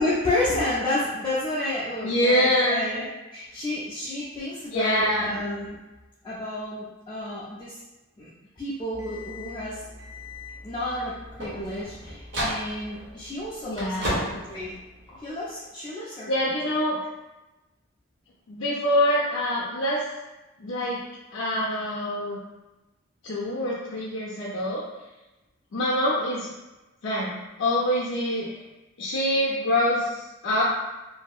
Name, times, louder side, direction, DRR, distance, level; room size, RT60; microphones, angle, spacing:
voice 1, 0.0-5.8 6.2-7.8 8.2-8.3 8.6-9.8 10.6-14.7 15.1-16.3, left 1 dB, 20° left, -9 dB, 0.4 m, -30 dB
voice 2, 2.0-2.8 4.7-5.3 13.7-14.2 16.3-17.0 18.5-20.0 20.6-21.0 21.3-22.4 23.2-24.8 25.7-26.5 27.0-28.6 29.0-30.6, left 1 dB, 80° left, -6 dB, 0.6 m, -25 dB
sound 1, 8.9-15.4, equal, 65° right, 0.8 m, -35 dB
2.7 x 2.6 x 2.3 m, 1.1 s
head